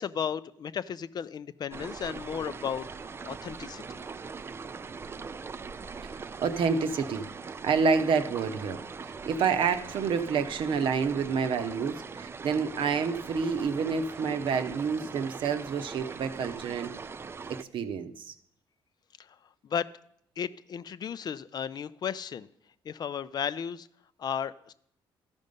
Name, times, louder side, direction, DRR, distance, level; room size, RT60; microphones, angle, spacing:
voice 1, 0.0-4.0 19.2-19.4 19.6-19.9 20.4-22.5 22.9-23.9 24.2-24.7, left 8 dB, 50° left, 15 dB, 0.4 m, -34 dB
sound 1, 1.7-17.6, right 5 dB, 25° right, 0.3 m, -41 dB
voice 2, 6.0-7.3 7.6-16.9 17.6-18.3, right 5 dB, 65° right, 8 dB, 0.7 m, -28 dB
13.0 x 5.3 x 5.3 m, 0.70 s
cardioid pair, 90°, 9 cm